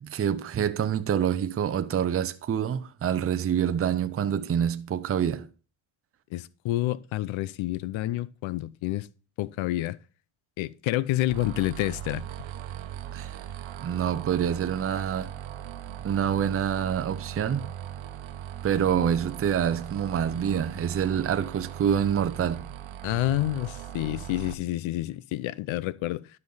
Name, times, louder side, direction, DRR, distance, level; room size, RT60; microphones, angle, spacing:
voice 1, 0.0-5.5 13.1-13.4 13.8-15.3 16.0-17.7 18.6-22.7, right 8 dB, 30° right, 0.6 m, -26 dB
voice 2, 6.3-9.1 9.4-10.0 10.6-12.2 23.0-26.3, left 16 dB, 90° left, 0.6 m, -29 dB
sound 1, 11.3-24.5, right 11 dB, 85° right, 1.0 m, -39 dB
12.0 x 5.4 x 3.9 m
cardioid pair, 115°, 46 cm